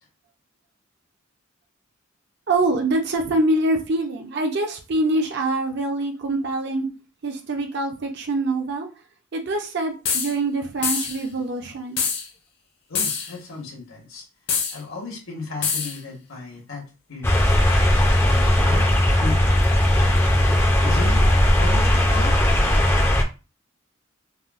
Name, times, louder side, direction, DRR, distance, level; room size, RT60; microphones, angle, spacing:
voice 1, 2.5-6.9 7.2-8.9 9.3-12.0, right 2 dB, 55° right, 0.6 m, -24 dB
sound 1, 10.0-10.3 10.8-11.2 12.0-12.3 12.9-13.3 14.5-14.8 15.6-16.0, left 6 dB, 55° left, 0.7 m, -24 dB
voice 2, 12.9-14.2 14.7-16.8 17.1-17.4 18.2-19.6 19.9-20.2 20.8-21.2 21.6-22.3, left 3 dB, 80° left, 1.2 m, -34 dB
sound 2, 17.2-23.2, left 1 dB, 10° left, 0.4 m, -18 dB
3.5 x 2.1 x 2.4 m
head